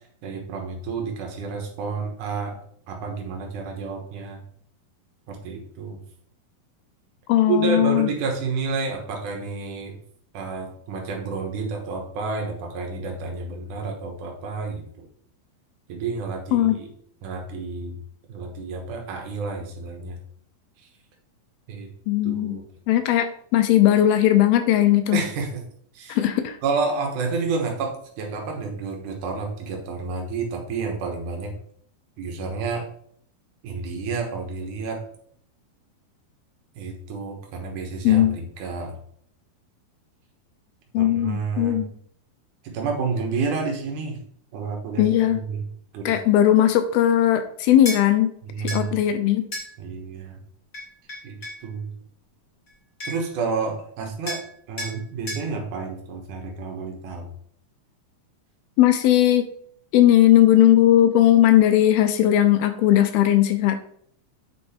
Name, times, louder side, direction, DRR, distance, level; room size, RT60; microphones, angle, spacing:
voice 1, 0.2-2.6 2.9-4.4 5.3-6.0 7.5-10.0 10.3-15.1 15.9-16.9 17.2-18.0 18.3-20.2 20.8-20.9 21.7-21.9 22.2-22.6 25.1-25.6 25.9-26.2 26.6-31.5 32.2-32.9 33.6-35.0 36.8-39.0 41.0-41.9 42.6-44.2 44.5-45.7 45.9-46.2 48.4-49.0 49.8-50.4 51.2-51.9 53.0-57.3, right 4 dB, 60° right, 2 dB, 2.5 m, -30 dB
voice 2, 7.3-8.1 16.5-16.8 22.1-22.6 22.9-25.2 26.1-26.6 38.0-38.4 40.9-41.9 45.0-45.4 46.1-48.3 48.6-49.4 58.8-59.5 59.9-63.9, left 12 dB, 80° left, 8 dB, 2.5 m, -18 dB
sound 1, 47.8-48.0 48.7-48.8 49.5-49.7 50.7-51.6 52.7-52.8 53.0-53.3 54.3-54.5 54.8-55.0 55.3-55.5, left 1 dB, 25° left, 2.1 m, -32 dB
8.5 x 4.6 x 4.4 m, 0.64 s
omnidirectional pair, 4.5 m